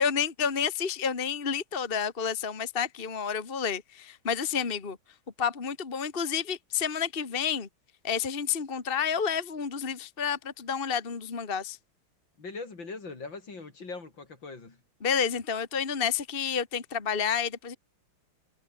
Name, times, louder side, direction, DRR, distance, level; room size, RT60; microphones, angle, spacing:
voice 1, 0.0-5.0 5.4-7.7 8.0-11.8 15.0-17.8, left 7 dB, 30° left, 1.8 m, -30 dB
voice 2, 12.4-14.8, left 3 dB, 65° left, 4.9 m, -41 dB
omnidirectional pair, 2.2 m